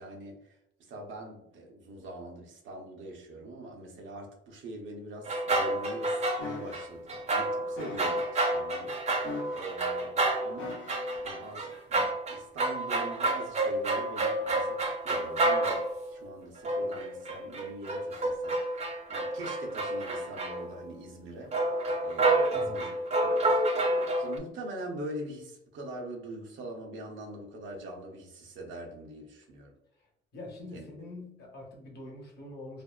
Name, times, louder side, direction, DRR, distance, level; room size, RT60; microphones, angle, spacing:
voice 1, 0.0-10.8 11.2-29.7 30.7-30.9, right 1 dB, 75° right, 1 dB, 0.7 m, -43 dB
sound 1, 5.3-6.8 7.1-16.1 16.6-20.8 21.5-24.4, right 2 dB, 35° right, 0.5 m, -29 dB
sound 2, 6.4-6.9 7.8-8.2 9.2-9.8 10.6-11.2 11.9-12.1, left 4 dB, 75° left, 0.5 m, -41 dB
voice 2, 30.3-32.8, left 2 dB, 55° left, 0 dB, 1.0 m, -44 dB
2.6 x 2.1 x 2.2 m, 0.80 s
cardioid pair, 90°, 20 cm